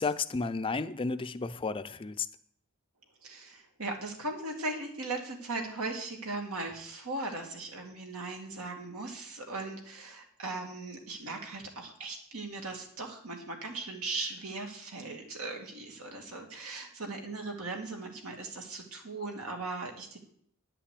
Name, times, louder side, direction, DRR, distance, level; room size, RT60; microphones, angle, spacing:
voice 1, 0.0-2.3, left 4 dB, 25° left, 11 dB, 0.5 m, -32 dB
voice 2, 3.2-20.2, right 2 dB, 90° right, 2 dB, 2.4 m, -38 dB
10.5 x 5.7 x 8.4 m, 0.65 s
head